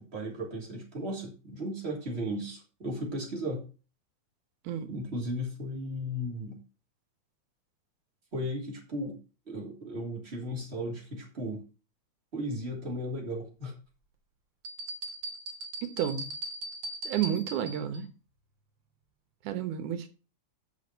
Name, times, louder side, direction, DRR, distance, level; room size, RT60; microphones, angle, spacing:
voice 1, 0.1-3.7 4.9-6.6 8.3-9.2 9.5-11.6 12.3-13.7, equal, 20° right, -2 dB, 3.2 m, -35 dB
voice 2, 4.6-5.0 15.8-16.3 17.0-18.1 19.4-20.1, right 10 dB, 90° right, 9 dB, 2.7 m, -31 dB
sound 1, 14.6-18.0, right 1 dB, 45° right, 1.9 m, -39 dB
8.0 x 6.2 x 6.6 m, 0.35 s
omnidirectional pair, 3.4 m